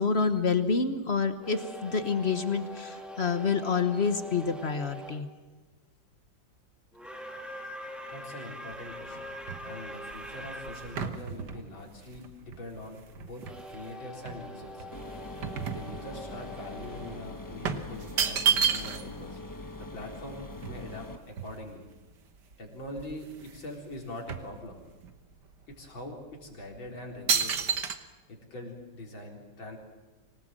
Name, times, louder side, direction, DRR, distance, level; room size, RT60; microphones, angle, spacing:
voice 1, 0.0-5.3, left 5 dB, 40° left, 9 dB, 1.1 m, -28 dB
sound 1, 1.4-5.3 6.9-11.1 13.4-18.3, equal, ahead, 1.7 m, -43 dB
voice 2, 8.1-9.4 9.6-14.9 15.6-19.4 19.8-21.9 22.6-24.8 25.7-27.7 28.3-29.8, left 1 dB, 80° left, 0 dB, 4.8 m, -43 dB
sound 2, 8.7-13.8 14.3-16.4 16.7-16.9 17.6-19.2 19.5-19.6 19.8-22.0 22.5-22.6 22.9-23.7 23.9-25.2 25.7-25.9 26.5-26.8 27.3-28.0, right 7 dB, 60° right, 1.8 m, -32 dB
sound 3, 14.9-21.2, left 2 dB, 15° left, 0.8 m, -43 dB
25.5 x 18.5 x 7.7 m, 1.2 s
omnidirectional pair, 2.1 m